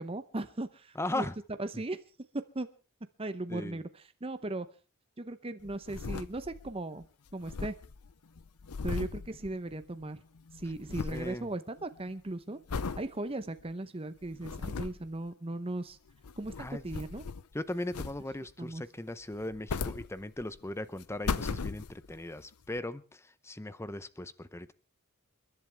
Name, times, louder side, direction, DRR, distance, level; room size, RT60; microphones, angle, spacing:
voice 1, 0.0-1.2 1.6-2.0 2.5-2.7 3.2-3.8 4.2-4.7 5.2-7.1 7.3-7.7 8.8-10.2 10.5-12.6 13.0-16.0 16.4-17.2 18.6-18.8, right 2 dB, 25° right, 10 dB, 0.8 m, -37 dB
voice 2, 0.9-1.3 1.7-1.8 3.5-3.8 11.1-11.5 16.6-16.8 17.5-24.7, left 1 dB, 10° left, 15 dB, 0.7 m, -38 dB
sound 1, 5.6-6.8 7.0-7.1 7.3-10.1 10.3-11.4 11.8-12.1 12.7-13.1 13.6-13.7 14.2-15.1 16.1-17.5 17.9-18.5 19.3-20.6 21.0-22.2 22.8-22.9, left 4 dB, 80° left, 0.7 m, -37 dB
29.0 x 11.0 x 3.4 m, 0.35 s
head